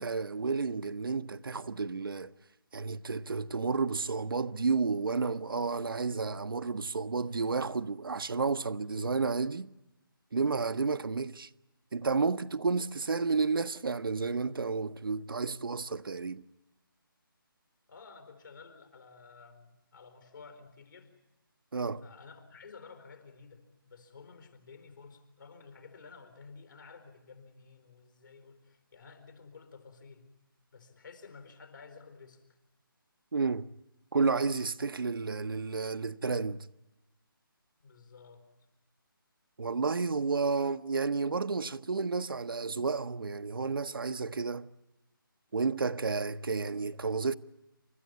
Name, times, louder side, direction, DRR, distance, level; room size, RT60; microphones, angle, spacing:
voice 1, 0.0-2.3 2.7-9.7 10.3-11.5 11.9-16.4 21.7-22.0 33.3-33.7 34.1-36.7 39.6-44.7 45.5-47.3, right 4 dB, 70° right, 0.8 m, -31 dB
voice 2, 17.9-21.1 22.0-30.3 30.7-32.4 37.8-38.4, left 5 dB, 60° left, 4.2 m, -52 dB
29.0 x 13.5 x 9.5 m
figure-of-eight pair, 160°, 12 cm